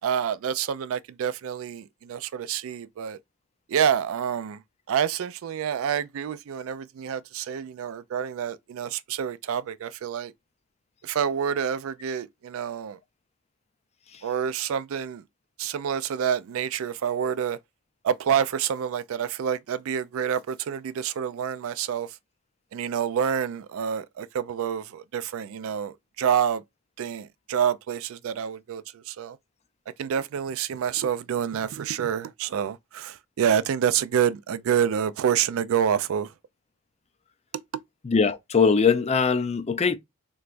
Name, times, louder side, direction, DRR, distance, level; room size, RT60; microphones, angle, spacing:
voice 1, 0.0-3.2 3.7-4.6 4.9-10.3 11.0-13.0 14.2-15.2 15.6-17.6 18.0-22.1 22.7-26.6 27.0-29.4 30.0-36.3, right 8 dB, 70° right, 0.3 m, -27 dB
voice 2, 38.1-40.0, left 5 dB, 30° left, 0.4 m, -21 dB
3.3 x 3.0 x 2.4 m
head